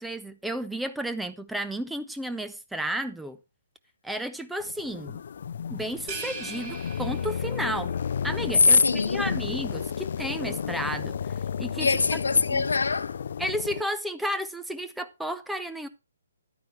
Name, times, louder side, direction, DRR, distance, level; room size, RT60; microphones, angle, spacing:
voice 1, 0.0-3.4 4.0-5.2 5.7-7.9 8.2-11.2 11.6-11.9 12.5-12.6 13.4-15.9, right 1 dB, 5° right, 0.5 m, -32 dB
sound 1, 4.6-13.8, left 7 dB, 55° left, 0.4 m, -33 dB
sound 2, 6.1-7.8, right 5 dB, 30° right, 2.1 m, -39 dB
voice 2, 8.6-9.5 11.8-13.2, left 4 dB, 70° left, 0.8 m, -22 dB
11.0 x 9.5 x 3.2 m
figure-of-eight pair, 135°, 0 cm